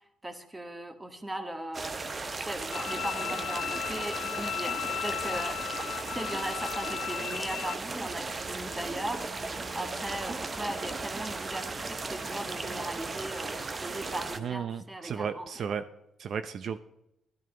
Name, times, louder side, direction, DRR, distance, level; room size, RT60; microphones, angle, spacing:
voice 1, 0.2-2.0 2.3-5.9 6.1-9.3 9.7-15.7, right 1 dB, 15° right, 7 dB, 1.6 m, -38 dB
sound 1, 1.7-14.4, right 3 dB, 30° right, 0.9 m, -36 dB
Bowed string instrument, 2.7-7.7, left 11 dB, 75° left, 0.5 m, -36 dB
voice 2, 14.4-15.8 16.2-16.8, right 7 dB, 60° right, 11 dB, 0.5 m, -34 dB
12.5 x 12.0 x 3.9 m, 0.83 s
cardioid pair, 90°, 0 cm